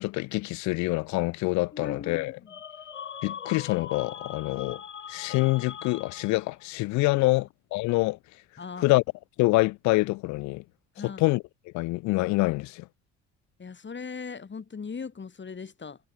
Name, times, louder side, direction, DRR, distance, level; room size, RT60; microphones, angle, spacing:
voice 1, 0.0-2.4 3.2-4.8 5.1-8.2 8.8-9.0 9.4-10.6 11.0-11.4 11.7-12.9, left 22 dB, 55° left, 0.6 m, -26 dB
voice 2, 1.7-2.5 7.1-7.4 8.6-8.9 11.0-11.2 13.6-16.0, left 5 dB, 30° left, 5.2 m, -39 dB
sound 1, 2.5-6.6, left 8 dB, 90° left, 2.0 m, -41 dB
figure-of-eight pair, 50°, 35 cm